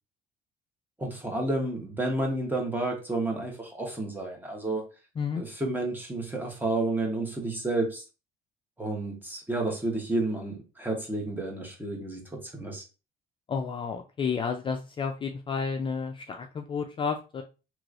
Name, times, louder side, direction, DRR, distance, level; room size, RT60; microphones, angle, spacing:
voice 1, 1.0-4.8 5.3-8.0 8.8-12.8, right 2 dB, 10° right, 2 dB, 1.0 m, -31 dB
voice 2, 13.5-17.4, left 5 dB, 30° left, 4 dB, 0.4 m, -31 dB
3.0 x 3.0 x 2.5 m, 0.31 s
cardioid pair, 110°, 17 cm